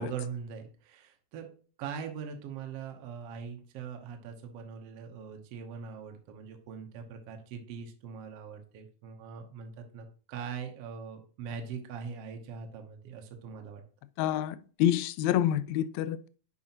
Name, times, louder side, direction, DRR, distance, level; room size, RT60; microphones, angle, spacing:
voice 1, 0.0-1.5 1.8-13.8, right 6 dB, 65° right, 1.6 m, -41 dB
voice 2, 14.2-16.3, left 11 dB, 85° left, 1.6 m, -27 dB
10.5 x 4.8 x 2.9 m
omnidirectional pair, 3.7 m